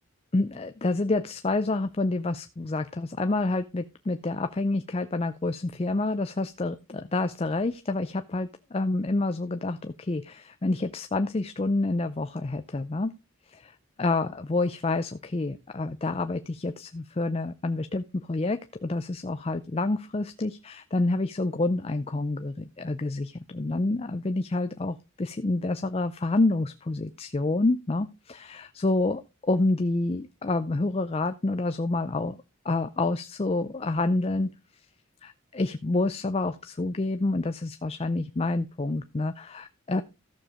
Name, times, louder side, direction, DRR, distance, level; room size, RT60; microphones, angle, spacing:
voice 1, 0.3-13.1 13.5-32.4 32.6-34.5 35.2-40.0, left 2 dB, 25° left, 10 dB, 0.4 m, -28 dB
14.0 x 7.0 x 3.7 m, 0.26 s
head